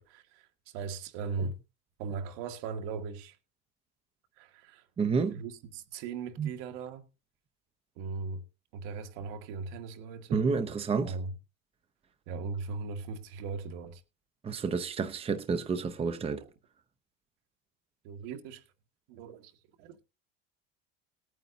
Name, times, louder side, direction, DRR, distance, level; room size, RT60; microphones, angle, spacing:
voice 1, 0.0-1.5 2.0-3.4 4.4-4.9 5.3-7.0 8.0-8.4 8.7-10.7 11.0-11.3 12.3-14.0 18.0-18.6 19.1-19.5 19.8-20.0, right 4 dB, 70° right, 2.1 m, -39 dB
voice 2, 5.0-5.4 6.4-6.5 10.3-11.1 14.4-16.5, right 5 dB, 20° right, 0.8 m, -30 dB
19.5 x 9.2 x 2.8 m
supercardioid pair, 130°, 30 cm